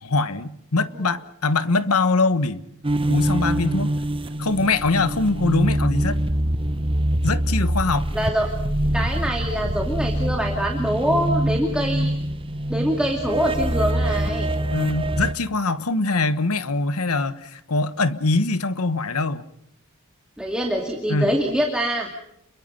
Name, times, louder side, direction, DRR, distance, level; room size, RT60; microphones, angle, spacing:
voice 1, 0.0-2.6 3.1-3.9 4.4-6.2 7.2-8.1 14.7-19.4 21.1-21.4, left 3 dB, 85° left, 13 dB, 1.3 m, -23 dB
sound 1, 2.8-15.3, right 1 dB, 25° right, 1.0 m, -24 dB
voice 2, 8.1-8.5 8.9-12.1 12.7-14.5 20.4-22.1, equal, 5° right, 1 dB, 2.5 m, -24 dB
29.5 x 22.5 x 5.5 m, 0.76 s
head